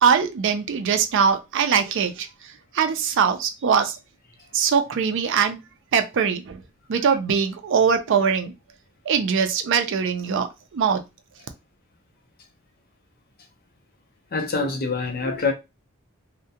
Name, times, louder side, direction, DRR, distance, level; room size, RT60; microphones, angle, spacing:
voice 1, 0.0-4.0 4.5-5.6 5.9-6.6 6.9-8.5 9.1-11.0, right 6 dB, 60° right, 0.4 m, -22 dB
voice 2, 14.3-15.5, left 4 dB, 45° left, 0.6 m, -25 dB
2.3 x 2.1 x 2.7 m
head